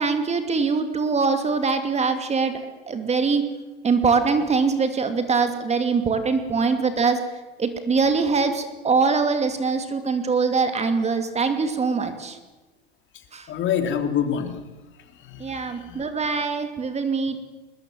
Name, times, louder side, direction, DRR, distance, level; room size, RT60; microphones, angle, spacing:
voice 1, 0.0-2.6 2.9-3.4 3.8-7.2 7.6-12.4 13.3-13.5 15.4-17.4, right 4 dB, 20° right, 8 dB, 2.5 m, -23 dB
voice 2, 13.1-14.7 15.0-16.0, left 8 dB, 40° left, 6 dB, 3.5 m, -28 dB
21.5 x 20.0 x 7.6 m, 1.2 s
hypercardioid pair, 100°, 29 cm